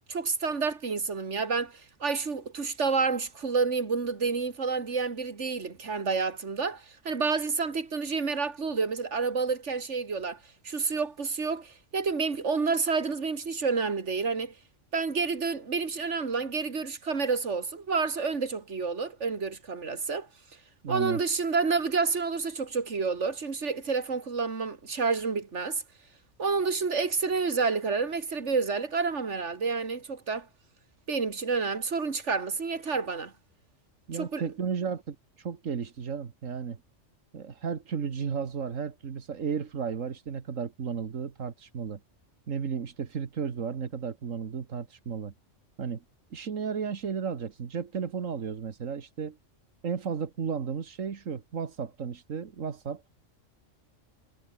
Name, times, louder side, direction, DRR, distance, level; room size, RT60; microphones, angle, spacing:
voice 1, 0.1-10.4 10.6-14.5 14.9-20.3 20.9-25.8 26.4-30.5 31.1-33.3 34.1-34.4, right 4 dB, 65° right, 2.6 m, -29 dB
voice 2, 20.8-21.2 34.1-36.8 37.3-42.0 42.5-45.3 45.8-46.0 46.3-49.4 49.8-53.0, right 6 dB, 90° right, 1.9 m, -34 dB
omnidirectional pair, 1.3 m